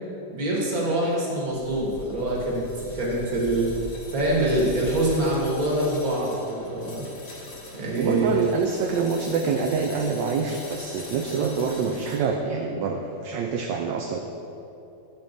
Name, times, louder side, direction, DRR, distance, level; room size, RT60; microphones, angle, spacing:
voice 1, 0.3-2.7 2.9-3.7 4.1-7.0 7.7-8.3, right 1 dB, 50° right, -4 dB, 1.9 m, -25 dB
sound 1, 1.5-12.2, left 1 dB, 55° left, 1.6 m, -41 dB
voice 2, 8.0-14.2, right 5 dB, 75° right, 2 dB, 1.1 m, -26 dB
11.5 x 6.9 x 2.6 m, 2.8 s
omnidirectional pair, 2.1 m